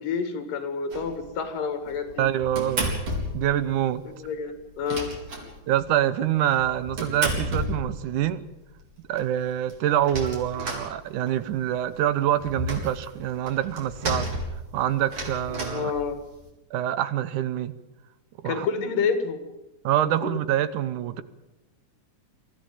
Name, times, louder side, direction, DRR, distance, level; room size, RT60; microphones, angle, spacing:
voice 1, 0.0-2.3 4.1-5.1 15.7-16.2 18.5-19.5 20.2-20.4, left 5 dB, 80° left, 9 dB, 3.7 m, -29 dB
sound 1, 0.9-1.3 1.9-3.6 3.9-4.0 4.2-4.3 4.6-5.9 6.5-8.3 8.8-8.9 9.2-9.3 9.5-11.5 11.9-16.5, right 1 dB, 50° right, 5.1 m, -32 dB
voice 2, 2.2-3.0 3.3-4.0 5.7-8.4 9.1-14.3 14.7-15.9 16.7-17.8 18.4-18.7 19.8-21.2, right 11 dB, 75° right, 14 dB, 2.3 m, -25 dB
24.0 x 14.0 x 9.1 m, 1.0 s
omnidirectional pair, 3.8 m